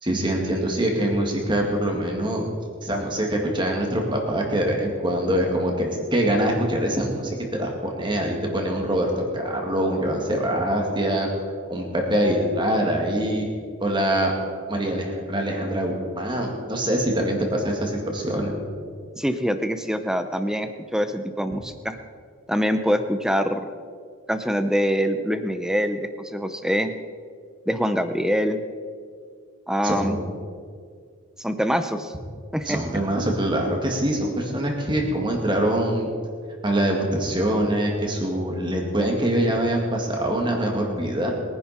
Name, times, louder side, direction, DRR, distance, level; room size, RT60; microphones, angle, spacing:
voice 1, 0.0-2.4 2.8-11.3 11.7-13.5 13.8-14.3 14.7-18.5 29.8-30.2 32.6-36.1 36.6-41.3, right 1 dB, 20° right, 1 dB, 2.1 m, -24 dB
voice 2, 19.2-22.0 22.5-23.6 24.3-26.9 27.7-28.6 29.7-30.1 31.4-32.1 32.5-32.8, equal, 5° right, 9 dB, 0.6 m, -24 dB
22.5 x 10.5 x 4.3 m, 2.1 s
head